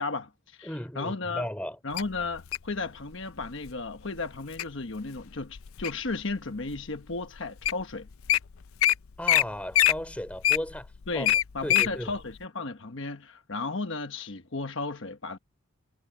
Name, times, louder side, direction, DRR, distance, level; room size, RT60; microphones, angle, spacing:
voice 1, 0.0-1.5 1.8-8.1 11.1-15.4, left 3 dB, 65° left, 1.2 m, -34 dB
voice 2, 0.6-1.8 9.2-10.9 11.1-11.3 11.6-12.1, equal, 5° left, 3.1 m, -35 dB
Wild animals, 2.0-2.7 3.4-3.7 4.2-4.6 5.2-6.1 6.7-6.8 7.4-7.5 7.6-7.8 8.1-8.4 8.8-8.9 9.3-9.4 9.7-11.9 12.4-12.5, left 13 dB, 85° left, 0.5 m, -23 dB
head